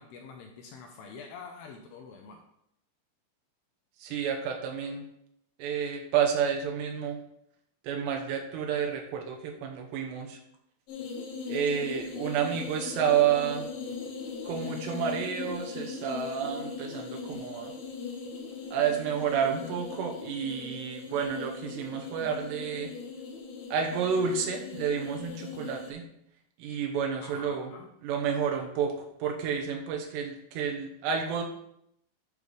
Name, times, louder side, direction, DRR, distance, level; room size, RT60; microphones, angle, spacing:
voice 1, 0.0-2.4 27.2-27.9, left 5 dB, 80° left, 2 dB, 2.5 m, -46 dB
voice 2, 4.0-5.0 5.6-7.2 7.8-10.4 11.5-13.7 14.4-17.7 18.7-22.9 23.7-26.0 26.6-27.7 28.0-31.4, right 7 dB, 75° right, 2 dB, 2.9 m, -30 dB
sound 1, 10.9-25.9, left 5 dB, 65° left, 2.6 m, -39 dB
11.0 x 5.4 x 3.3 m, 0.75 s
omnidirectional pair, 5.3 m